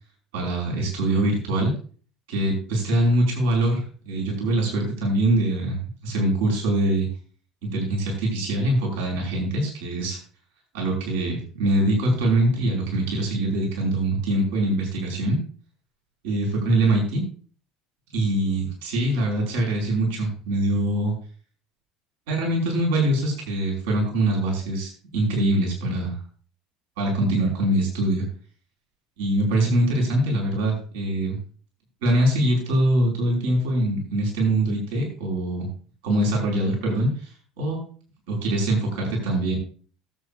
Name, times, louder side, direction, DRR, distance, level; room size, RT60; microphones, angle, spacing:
voice 1, 0.3-1.7 2.3-7.1 7.7-10.2 10.7-15.4 16.2-17.2 18.1-21.1 22.3-26.2 27.0-28.2 29.2-31.4 32.0-35.7 36.0-37.1 37.6-37.8 38.3-39.6, right 1 dB, 65° right, -1 dB, 5.1 m, -23 dB
19.0 x 8.4 x 2.5 m, 0.41 s
figure-of-eight pair, 65°, 0 cm